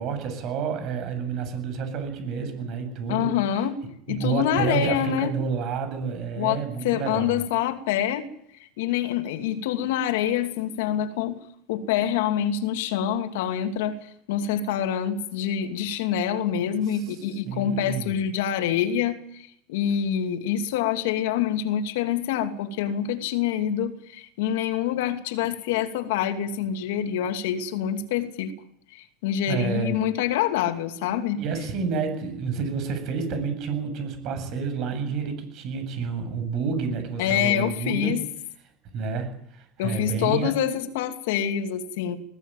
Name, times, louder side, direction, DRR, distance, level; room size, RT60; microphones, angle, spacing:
voice 1, 0.0-3.7 4.1-7.4 16.9-17.2 17.4-18.1 29.5-30.0 31.4-38.2 38.9-40.5, right 5 dB, 50° right, 8 dB, 7.9 m, -29 dB
voice 2, 3.1-3.8 4.1-5.3 6.3-8.3 8.8-11.4 11.7-28.5 28.9-31.4 37.2-38.2 39.8-42.2, left 9 dB, 85° left, 7 dB, 2.8 m, -26 dB
20.5 x 16.5 x 9.1 m, 0.70 s
supercardioid pair, 140°, 0 cm